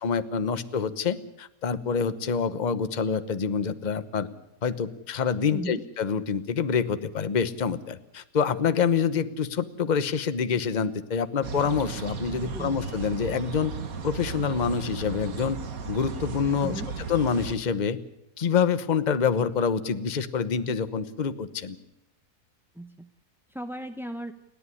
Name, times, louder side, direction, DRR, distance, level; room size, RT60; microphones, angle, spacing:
voice 1, 0.0-4.3 4.6-13.7 14.0-15.6 15.9-16.8 17.1-18.0 18.4-21.8, left 6 dB, 35° left, 12 dB, 1.0 m, -26 dB
voice 2, 5.5-5.8 12.4-12.8 16.6-16.9 22.7-23.1 23.5-24.3, right 1 dB, ahead, 7 dB, 0.5 m, -36 dB
sound 1, 11.4-17.6, right 5 dB, 65° right, 1.9 m, -35 dB
29.5 x 11.0 x 9.8 m, 0.90 s
omnidirectional pair, 1.7 m